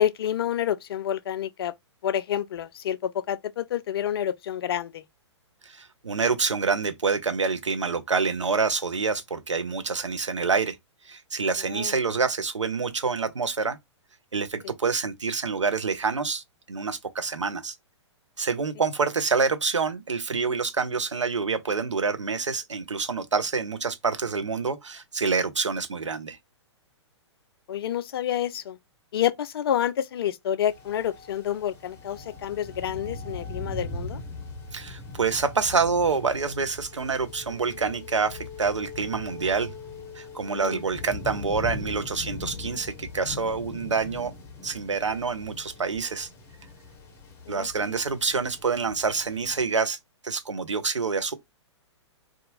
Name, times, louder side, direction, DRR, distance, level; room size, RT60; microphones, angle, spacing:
voice 1, 0.0-1.7 2.0-5.0 11.6-11.9 27.7-28.8 29.1-34.2 40.5-40.8 47.5-47.9, left 10 dB, 55° left, 0.4 m, -28 dB
voice 2, 5.6-10.8 11.0-13.8 14.3-17.8 18.4-26.4 34.7-39.7 40.1-44.3 44.6-46.3 47.5-50.0 50.2-51.3, right 5 dB, 80° right, 0.6 m, -27 dB
sound 1, 30.6-49.7, left 3 dB, 15° left, 0.6 m, -40 dB
2.6 x 2.4 x 2.7 m
figure-of-eight pair, 115°, 15 cm